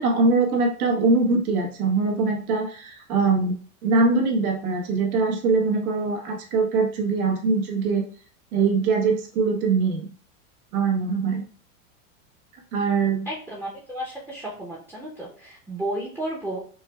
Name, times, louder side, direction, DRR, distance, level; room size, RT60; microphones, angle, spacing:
voice 1, 0.0-8.0 8.5-10.1 10.7-11.5 12.7-13.3, right 4 dB, 85° right, 1 dB, 1.2 m, -22 dB
voice 2, 13.3-16.6, right 1 dB, 5° right, -5 dB, 0.6 m, -33 dB
5.0 x 2.2 x 2.2 m, 0.43 s
supercardioid pair, 125°, 42 cm